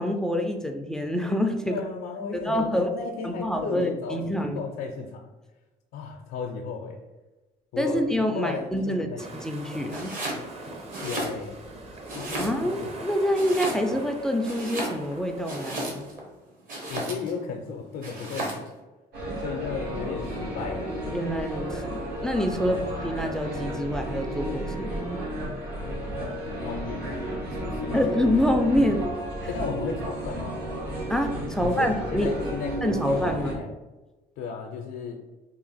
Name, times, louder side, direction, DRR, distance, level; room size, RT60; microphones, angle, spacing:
voice 1, 0.0-1.8 2.3-2.9 3.2-4.6 7.8-10.1 12.4-16.1 21.1-25.2 27.9-29.0 29.4-29.5 31.1-32.3 32.8-33.6, equal, 5° left, 5 dB, 0.3 m, -26 dB
voice 2, 1.7-5.3 5.9-7.0 7.7-8.1 8.3-9.2 11.0-11.6 12.1-12.9 16.9-18.7 19.4-20.8 22.6-22.9 25.9-26.0 26.5-27.2 27.6-28.0 29.5-30.5 31.6-33.7 34.4-35.2, left 5 dB, 85° left, 1 dB, 0.5 m, -35 dB
sound 1, 9.2-16.2, right 2 dB, 35° right, 0.7 m, -42 dB
Domestic sounds home sounds, 9.9-10.4 10.8-11.7 12.1-12.9 13.3-14.1 14.4-16.2 16.7-17.4 18.0-18.7, right 1 dB, 55° right, 1.1 m, -33 dB
sound 2, 19.1-33.5, equal, 70° right, 1.2 m, -33 dB
2.9 x 2.4 x 4.0 m, 1.1 s
cardioid pair, 110°, 17 cm